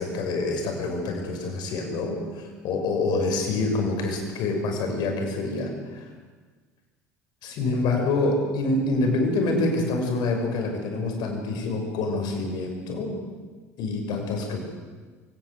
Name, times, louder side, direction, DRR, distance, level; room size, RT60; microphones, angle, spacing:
voice 1, 0.0-6.1 7.4-13.2 13.8-14.6, left 2 dB, 55° left, 2 dB, 6.2 m, -26 dB
24.0 x 17.5 x 8.0 m, 1.4 s
hypercardioid pair, 65°, 8 cm